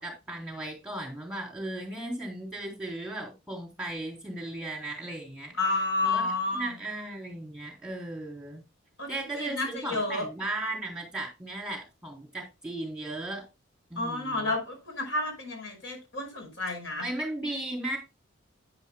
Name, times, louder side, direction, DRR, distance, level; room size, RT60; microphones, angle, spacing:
voice 1, 0.0-5.5 6.0-8.6 9.1-13.4 13.9-14.5 17.0-18.0, right 2 dB, 5° right, 3.6 m, -36 dB
voice 2, 5.6-6.7 9.0-10.3 14.0-17.0, left 2 dB, 65° left, 5.4 m, -30 dB
12.0 x 9.7 x 2.3 m
head